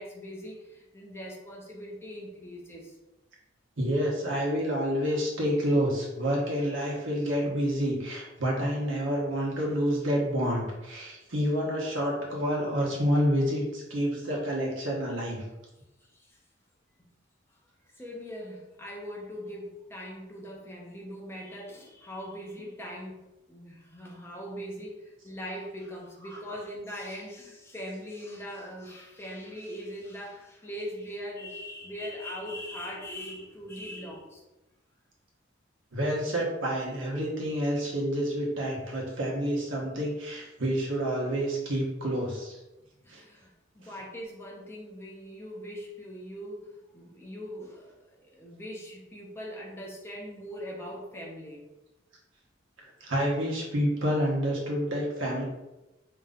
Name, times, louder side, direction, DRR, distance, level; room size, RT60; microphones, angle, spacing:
voice 1, 0.0-2.9 16.1-16.4 17.0-17.1 18.0-34.4 43.0-51.7, equal, 15° left, -3 dB, 0.8 m, -41 dB
voice 2, 3.8-15.4 26.5-26.6 35.9-42.6 43.1-43.2 53.0-55.4, equal, 85° right, -3 dB, 1.2 m, -28 dB
5.2 x 2.9 x 2.5 m, 1.0 s
head